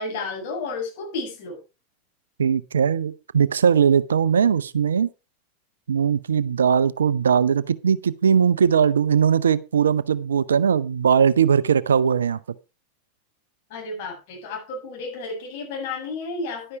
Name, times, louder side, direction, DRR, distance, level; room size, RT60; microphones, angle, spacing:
voice 1, 0.0-1.6 13.7-16.8, left 3 dB, 60° left, 7.5 m, -32 dB
voice 2, 2.4-5.1 5.9-12.4, right 7 dB, 80° right, 0.6 m, -20 dB
11.0 x 9.8 x 4.7 m
hypercardioid pair, 90°, 0 cm